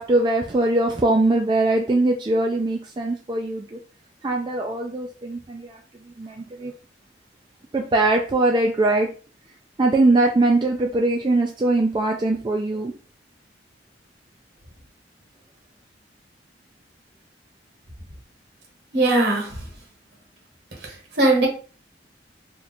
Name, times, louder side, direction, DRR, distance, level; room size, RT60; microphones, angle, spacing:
voice 1, 0.0-3.8 4.2-6.7 7.7-9.1 9.8-12.9, right 2 dB, 25° right, 1 dB, 0.3 m, -21 dB
voice 2, 18.9-19.5 21.2-21.5, right 2 dB, 60° right, 0 dB, 1.4 m, -18 dB
3.0 x 2.4 x 4.1 m, 0.38 s
head